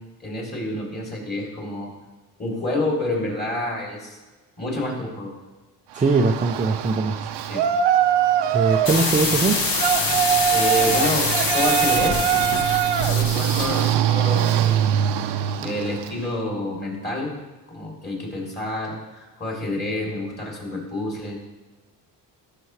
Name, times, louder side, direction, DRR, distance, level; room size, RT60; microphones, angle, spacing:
voice 1, 0.0-1.9 2.4-4.2 4.6-5.3 7.4-7.6 10.5-12.3 13.0-14.9 15.6-17.3 17.7-21.4, left 1 dB, 25° left, -3 dB, 3.0 m, -28 dB
voice 2, 5.9-7.2 8.5-9.6, right 3 dB, 20° right, 3 dB, 0.5 m, -21 dB
Yell, 6.0-16.2, right 10 dB, 75° right, 0.7 m, -22 dB
sound 1, 8.8-14.0, left 3 dB, 55° left, 1.6 m, -25 dB
13.5 x 6.7 x 3.2 m, 1.2 s
cardioid pair, 115°, 41 cm